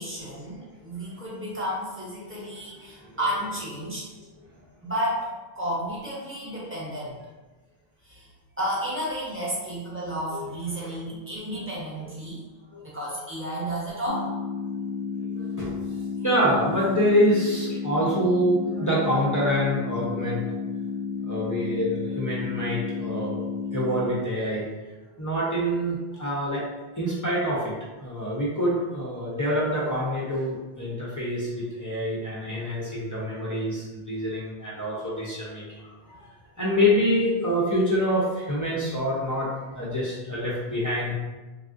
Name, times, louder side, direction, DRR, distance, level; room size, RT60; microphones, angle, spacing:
voice 1, 0.0-4.0 4.8-5.3 5.5-7.2 8.0-8.3 8.6-12.4 12.8-14.3 35.8-36.3, equal, 15° right, -7 dB, 0.9 m, -32 dB
voice 2, 2.7-3.5 4.1-4.5 10.3-11.2 11.5-11.7 12.0-12.1 12.7-12.8 15.2-20.5 21.2-24.7 25.2-26.6 26.9-35.8 36.6-41.1, equal, 25° left, -7 dB, 0.5 m, -26 dB
sound 1, 14.1-24.1, left 5 dB, 65° left, 0.7 m, -32 dB
3.3 x 2.5 x 2.5 m, 1.2 s
omnidirectional pair, 1.0 m